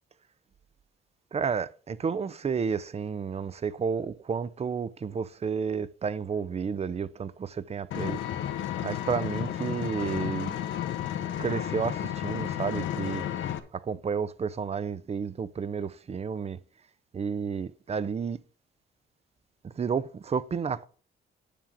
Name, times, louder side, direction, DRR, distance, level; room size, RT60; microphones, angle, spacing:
voice 1, 1.3-8.2 8.8-10.6 11.4-13.3 13.7-16.6 17.1-18.4 19.6-20.9, right 6 dB, 30° right, 0.6 m, -31 dB
Vehicle, 7.9-13.6, left 10 dB, 80° left, 1.0 m, -32 dB
10.0 x 3.7 x 7.2 m
cardioid pair, 90°, 20 cm